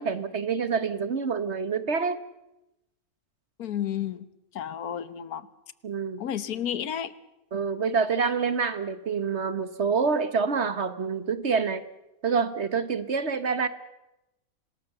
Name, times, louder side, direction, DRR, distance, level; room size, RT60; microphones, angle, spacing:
voice 1, 0.0-2.2 5.8-6.2 7.5-11.8 12.2-13.7, right 5 dB, 50° right, 1.4 m, -27 dB
voice 2, 3.6-4.3 4.5-5.5 6.2-7.1, left 9 dB, 80° left, 1.6 m, -31 dB
26.5 x 19.5 x 6.8 m
omnidirectional pair, 1.6 m